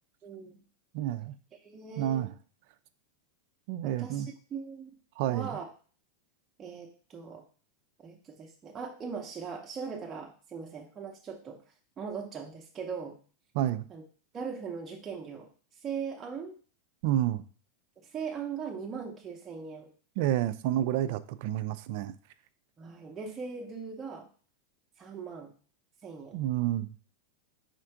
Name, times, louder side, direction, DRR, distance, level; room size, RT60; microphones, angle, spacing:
voice 1, 0.2-0.6 1.6-2.2 4.0-4.9 5.3-5.7 6.6-7.4 8.0-11.6 12.0-13.2 13.9-14.0 14.3-15.5 15.8-16.6 18.0-19.9 22.8-24.3 25.0-25.5 26.0-26.4, right 6 dB, 20° right, 0 dB, 0.6 m, -39 dB
voice 2, 0.9-1.3 2.0-2.3 3.7-4.3 5.2-5.6 13.5-13.8 17.0-17.4 20.2-22.1 26.3-26.9, right 12 dB, 55° right, 14 dB, 0.3 m, -29 dB
4.3 x 2.5 x 4.5 m, 0.40 s
supercardioid pair, 140°, 0 cm